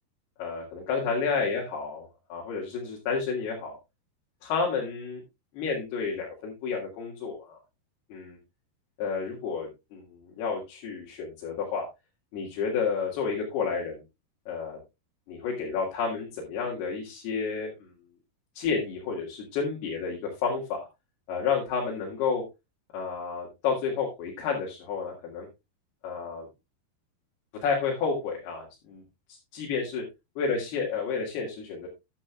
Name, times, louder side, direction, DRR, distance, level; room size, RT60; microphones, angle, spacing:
voice 1, 0.4-3.8 4.4-5.2 5.5-7.6 8.1-8.4 9.0-11.8 12.3-14.0 14.5-14.8 15.3-17.9 18.6-20.8 21.3-22.4 22.9-25.5 26.0-26.5 27.6-29.0 29.3-30.0 30.4-31.9, left 5 dB, 75° left, -2 dB, 4.0 m, -30 dB
13.0 x 10.0 x 2.3 m, 0.23 s
omnidirectional pair, 4.7 m